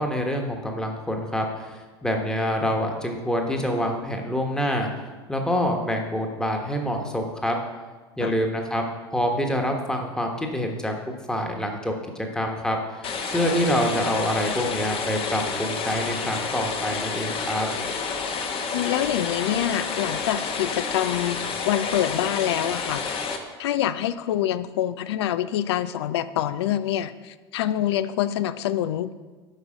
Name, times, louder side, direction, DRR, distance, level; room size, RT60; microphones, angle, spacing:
voice 1, 0.0-4.9 5.3-7.5 8.2-8.8 9.1-11.0 11.3-11.9 12.3-17.7, equal, 5° left, 2 dB, 1.2 m, -26 dB
sound 1, 13.0-23.4, left 5 dB, 40° left, 1.0 m, -29 dB
voice 2, 18.7-23.1 23.6-29.1, left 11 dB, 75° left, 14 dB, 0.4 m, -26 dB
8.2 x 5.4 x 5.1 m, 1.3 s
hypercardioid pair, 80°, 14 cm